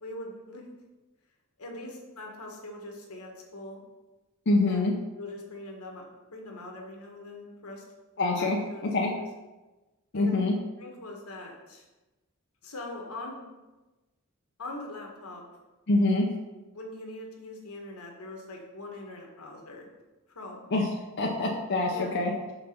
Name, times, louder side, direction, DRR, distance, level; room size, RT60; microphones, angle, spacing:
voice 1, 0.0-0.6 1.6-3.8 4.7-4.8 5.2-7.8 8.4-9.3 10.1-10.4 10.8-11.8 12.6-13.5 14.6-15.4 16.7-19.9 20.3-20.7 21.9-22.2, left 2 dB, 85° left, 1 dB, 1.4 m, -42 dB
voice 2, 4.5-4.9 8.2-8.6 8.9-9.1 10.1-10.5 15.9-16.3 20.7-20.9 21.2-22.3, left 2 dB, 55° left, -1 dB, 0.7 m, -25 dB
5.8 x 3.9 x 5.8 m, 1.1 s
head